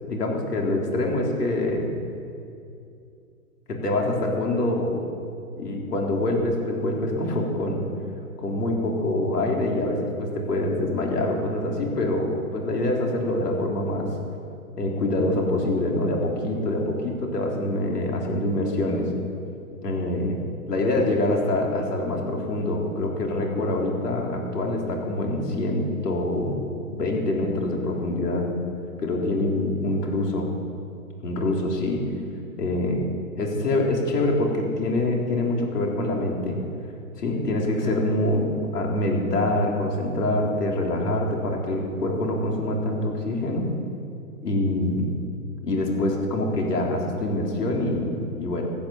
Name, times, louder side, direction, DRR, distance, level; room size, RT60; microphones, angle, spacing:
voice 1, 0.0-2.0 3.7-5.0 5.6-7.9 8.4-14.1 14.8-19.1 19.8-28.5 29.0-30.5 31.2-32.0 32.6-33.1 33.4-36.6 37.2-43.7 44.4-45.1 45.6-48.6, left 1 dB, 85° left, 0 dB, 3.9 m, -25 dB
15.0 x 8.9 x 7.7 m, 2.5 s
hypercardioid pair, 160°, 46 cm